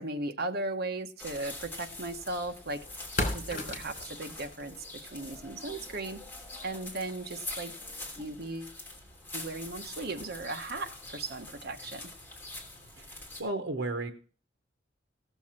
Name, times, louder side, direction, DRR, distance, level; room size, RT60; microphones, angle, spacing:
voice 1, 0.0-2.9 3.3-4.8 5.0-6.2 6.6-7.7 8.2-8.8 9.3-12.1, right 2 dB, 55° right, 1.2 m, -37 dB
sound 1, 1.2-13.4, left 2 dB, 10° left, 3.1 m, -44 dB
sound 2, 1.9-11.9, left 2 dB, 45° left, 3.1 m, -42 dB
voice 2, 13.0-14.1, right 2 dB, 85° right, 1.0 m, -34 dB
17.0 x 7.0 x 4.4 m
head